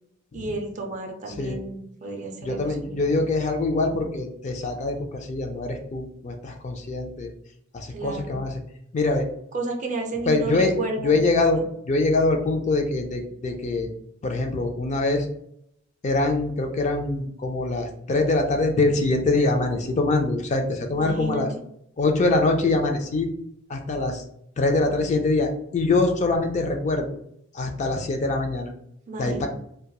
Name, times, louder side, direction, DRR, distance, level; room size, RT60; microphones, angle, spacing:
voice 1, 0.3-3.1 7.9-8.4 9.5-11.1 20.9-21.5 29.1-29.5, right 2 dB, 35° right, 2 dB, 0.5 m, -32 dB
voice 2, 2.4-7.3 7.7-8.6 8.9-9.3 10.2-10.7 11.0-13.9 14.2-15.3 16.0-21.5 22.0-23.3 23.7-24.2 24.6-27.1 27.5-28.7 29.2-29.5, left 2 dB, 35° left, 3 dB, 0.3 m, -24 dB
2.8 x 2.2 x 2.2 m, 0.72 s
head